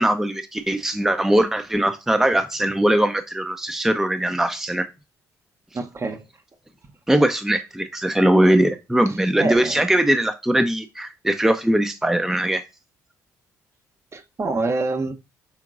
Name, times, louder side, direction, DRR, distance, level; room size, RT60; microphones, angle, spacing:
voice 1, 0.0-4.9 7.1-12.6, right 1 dB, 5° right, 0.5 m, -20 dB
voice 2, 5.7-6.2 9.1-9.8 14.1-15.1, right 3 dB, 35° right, 0.8 m, -26 dB
5.9 x 3.7 x 2.4 m
hypercardioid pair, 50°, 8 cm